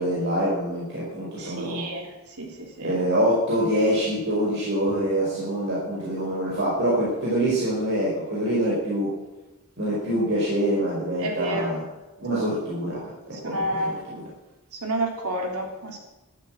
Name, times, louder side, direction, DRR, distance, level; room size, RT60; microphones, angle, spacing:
voice 1, 0.0-1.9 2.8-9.1 9.8-11.8 12.2-13.0 13.4-14.2, right 1 dB, 55° right, -6 dB, 4.8 m, -25 dB
voice 2, 1.4-2.1 2.4-3.0 11.2-11.7 13.4-14.0 14.8-16.0, right 1 dB, 85° right, 2 dB, 3.1 m, -29 dB
12.5 x 11.0 x 7.7 m, 1.0 s
head